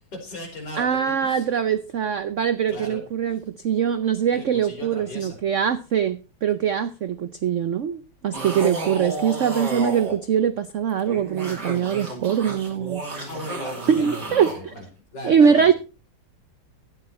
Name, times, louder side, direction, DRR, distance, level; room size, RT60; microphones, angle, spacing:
voice 1, 0.1-1.5 2.7-3.0 4.3-5.4 8.6-8.9 13.3-14.9 15.1-15.7, left 1 dB, 60° left, 2 dB, 4.6 m, -37 dB
voice 2, 0.8-3.4 3.6-13.0 13.9-14.7 15.2-15.7, right 7 dB, 80° right, 11 dB, 0.6 m, -22 dB
sound 1, 8.3-10.1 10.9-14.6, right 2 dB, 55° right, 3.6 m, -32 dB
11.5 x 9.4 x 4.3 m, 0.32 s
omnidirectional pair, 2.1 m